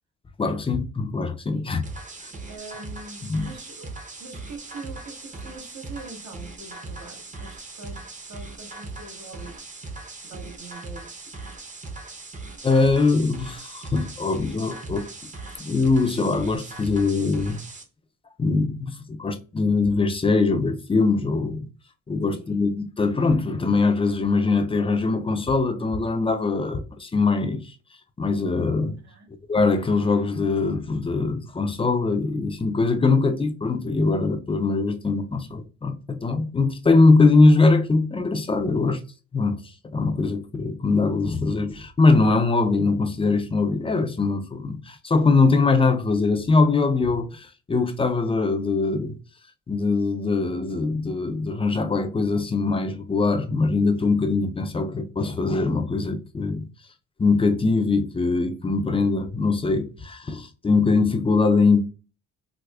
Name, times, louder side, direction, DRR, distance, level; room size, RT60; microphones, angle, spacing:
voice 1, 0.4-1.8 2.2-2.3 3.3-3.5 12.6-15.1 15.6-17.6 18.4-21.7 22.1-27.6 28.2-29.0 29.5-39.0 39.3-49.2 49.7-56.7 57.2-61.8, left 3 dB, 20° left, 0.4 m, -22 dB
sound 1, 1.8-17.8, right 3 dB, 25° right, 0.7 m, -39 dB
voice 2, 2.5-3.9 4.2-11.3 22.3-22.6 29.0-29.3, right 3 dB, 65° right, 1.2 m, -43 dB
4.6 x 2.1 x 2.3 m
cardioid pair, 90°, 30 cm